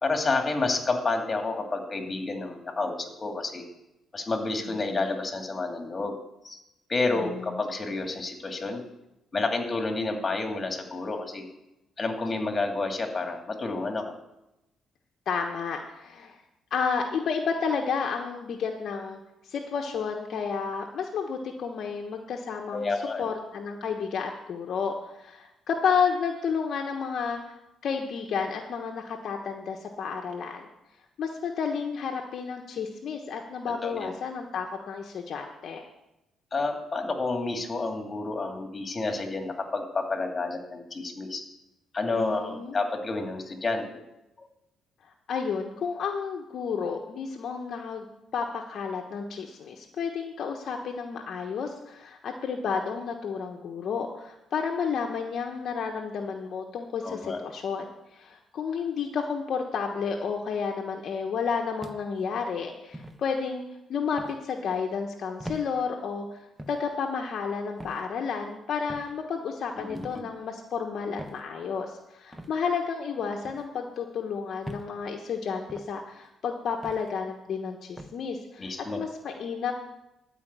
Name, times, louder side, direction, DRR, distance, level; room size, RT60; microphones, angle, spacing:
voice 1, 0.0-3.6 4.1-6.2 6.4-6.6 6.9-8.8 9.3-11.5 12.0-14.2 22.7-23.3 33.8-34.1 36.5-41.4 41.9-44.0 44.4-44.5 57.0-57.4 69.8-70.2 78.6-79.0, left 3 dB, 30° left, 3 dB, 2.5 m, -30 dB
voice 2, 7.1-7.5 15.3-16.4 16.7-22.9 23.2-30.7 31.2-35.9 42.1-42.7 45.3-48.0 48.3-57.8 58.1-63.6 63.9-78.7 79.0-79.7, left 6 dB, 65° left, 2 dB, 1.2 m, -31 dB
sound 1, 61.8-62.3 62.9-63.2 64.2-64.4 65.4-65.7 66.6-66.8 67.8-68.0 68.9-69.1 69.9-70.2 71.2-71.4 72.3-72.5 73.4-73.7 74.6-74.9 75.7-75.9 76.8-77.1 78.0-78.2, right 1 dB, 10° right, 1.2 m, -41 dB
12.0 x 5.2 x 8.8 m, 0.90 s
cardioid pair, 75°, 0 cm